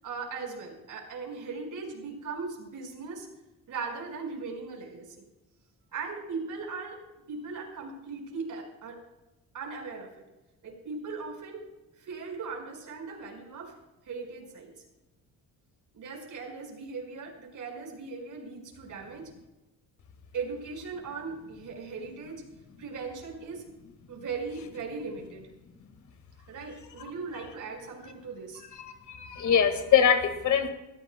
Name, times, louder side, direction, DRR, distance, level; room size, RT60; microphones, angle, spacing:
voice 1, 0.0-3.3 3.7-5.2 5.9-7.0 7.3-9.0 9.5-10.1 10.6-11.6 12.0-13.7 14.0-14.8 15.9-19.3 20.3-22.4 22.8-23.6 24.1-25.5 26.5-28.6, right 4 dB, 60° right, 0 dB, 5.0 m, -38 dB
voice 2, 29.1-30.7, left 8 dB, 55° left, 7 dB, 1.8 m, -23 dB
24.5 x 15.0 x 2.2 m, 1.0 s
cardioid pair, 140°, 35 cm